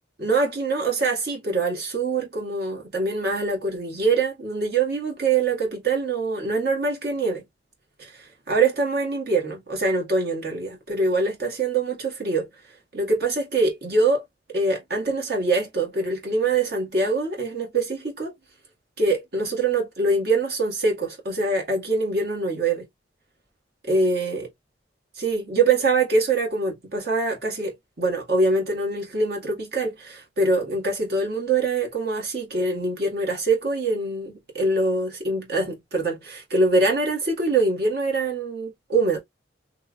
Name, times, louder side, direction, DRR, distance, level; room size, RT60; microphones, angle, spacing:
voice 1, 0.2-7.4 8.0-12.5 12.9-14.2 14.5-18.3 19.0-22.9 23.9-24.5 25.2-39.2, right 3 dB, 60° right, 1.6 m, -24 dB
3.4 x 3.2 x 2.3 m
head